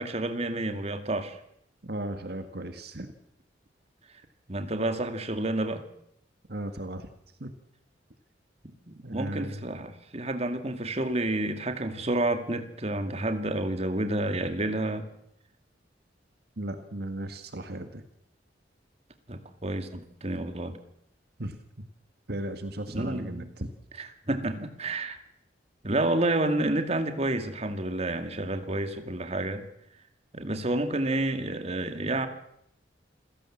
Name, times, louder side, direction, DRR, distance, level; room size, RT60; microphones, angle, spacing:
voice 1, 0.0-1.4 4.5-5.8 8.6-15.1 19.3-20.8 22.9-23.5 24.0-25.2 25.8-29.6 30.3-32.3, right 2 dB, 35° right, 8 dB, 2.2 m, -30 dB
voice 2, 1.8-3.1 6.5-7.1 7.4-7.5 9.0-9.6 16.6-18.0 21.4-21.6 22.3-23.7, right 1 dB, 60° right, 8 dB, 1.8 m, -36 dB
27.5 x 16.5 x 7.4 m, 0.75 s
head